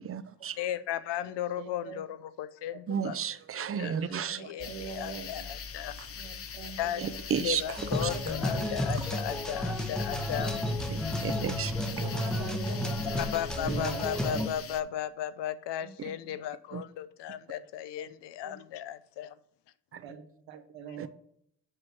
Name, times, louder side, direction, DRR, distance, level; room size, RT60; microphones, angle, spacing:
voice 1, 0.0-0.6 2.9-4.4 7.0-7.6 8.0-8.1 10.9-11.0 11.2-12.0 16.7-16.8 21.0-21.1, right 7 dB, 30° right, 0.5 m, -32 dB
voice 2, 0.6-3.2 3.6-6.5 6.8-10.5 13.1-19.4, left 11 dB, 70° left, 0.6 m, -36 dB
voice 3, 1.2-2.0 4.1-5.4 6.2-7.2 7.5-7.6 8.0-8.2 8.5-8.7 10.4-10.9 11.9-13.0 13.5-14.5 15.8-16.1 18.0-18.1 18.4-18.6 20.0-21.1, right 7 dB, 85° right, 1.2 m, -43 dB
sound 1, 4.6-14.8, left 7 dB, 35° left, 0.6 m, -42 dB
sound 2, 7.8-14.5, left 1 dB, ahead, 0.8 m, -32 dB
7.8 x 2.9 x 5.8 m
supercardioid pair, 65°, 44 cm